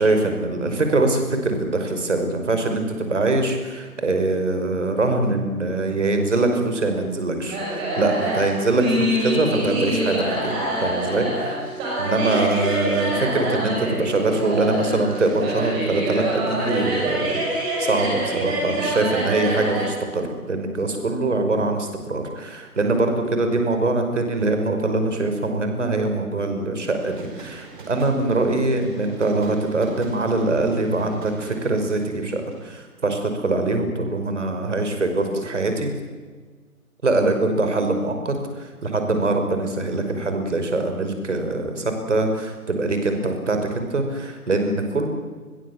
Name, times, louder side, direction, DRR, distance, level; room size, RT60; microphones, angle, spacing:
voice 1, 0.0-10.5 10.8-11.6 12.0-35.9 37.0-45.1, right 2 dB, 50° right, 6 dB, 5.6 m, -23 dB
sound 1, 7.5-19.8, right 1 dB, 10° right, 6.0 m, -26 dB
sound 2, 27.0-32.8, right 4 dB, 30° right, 5.4 m, -43 dB
28.5 x 22.0 x 7.5 m, 1.4 s
figure-of-eight pair, 150°, 45 cm